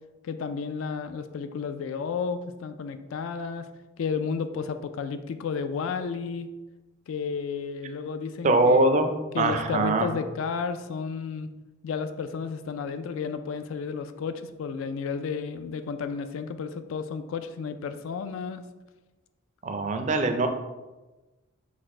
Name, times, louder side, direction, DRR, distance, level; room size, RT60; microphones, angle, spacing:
voice 1, 0.2-3.7 4.0-6.5 7.1-8.9 9.3-11.5 11.8-18.6, left 5 dB, 70° left, 10 dB, 0.3 m, -32 dB
voice 2, 8.4-10.1 19.6-20.5, right 2 dB, 35° right, 6 dB, 0.3 m, -22 dB
4.2 x 2.5 x 4.2 m, 1.1 s
head